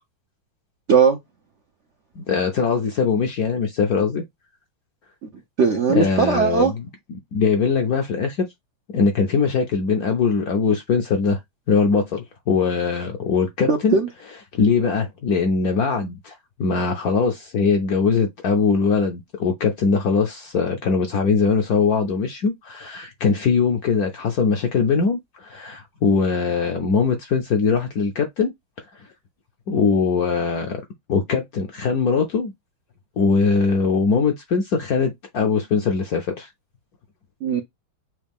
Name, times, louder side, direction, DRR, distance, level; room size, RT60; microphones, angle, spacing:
voice 1, 2.2-4.2 5.9-6.8 7.3-8.4 8.9-11.4 11.7-14.0 14.5-28.5 29.0-29.1 29.7-30.8 31.1-32.5 33.2-36.5, left 5 dB, 70° left, 0.9 m, -21 dB
voice 2, 5.6-6.7 13.7-14.1 37.4-37.6, right 5 dB, 75° right, 0.6 m, -18 dB
6.0 x 2.4 x 3.4 m
omnidirectional pair, 2.2 m